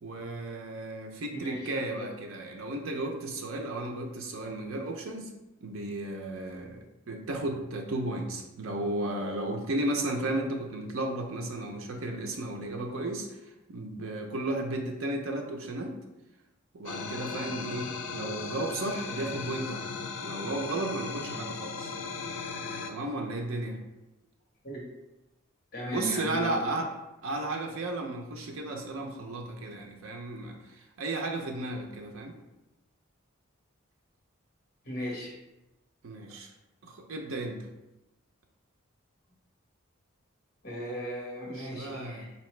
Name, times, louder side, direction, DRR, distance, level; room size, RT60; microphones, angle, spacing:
voice 1, 0.0-5.3 5.6-6.8 7.1-13.3 13.7-16.0 16.7-19.9 20.2-21.9 22.9-23.8 25.9-26.9 27.2-30.6 31.0-32.4 36.0-36.5 36.8-37.6 41.6-42.3, right 2 dB, 75° right, 2 dB, 0.6 m, -34 dB
voice 2, 1.3-2.1 24.6-24.9 25.7-26.6 34.8-35.3 40.6-42.3, equal, 45° left, -4 dB, 1.4 m, -37 dB
sound 1, 16.9-22.9, left 4 dB, 70° left, 0.4 m, -37 dB
4.2 x 2.8 x 3.1 m, 0.96 s
head